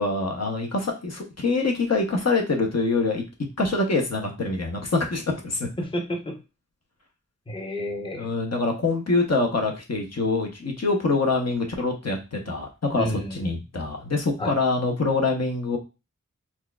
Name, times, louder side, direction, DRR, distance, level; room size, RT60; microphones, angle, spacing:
voice 1, 0.0-3.2 3.6-5.7 8.1-15.8, left 3 dB, 55° left, 2 dB, 0.8 m, -25 dB
voice 2, 5.8-6.4 7.5-8.3 13.0-13.4 14.4-14.5, equal, 15° left, 2 dB, 0.6 m, -30 dB
4.3 x 2.3 x 2.2 m, 0.28 s
wide cardioid pair, 60°, 31 cm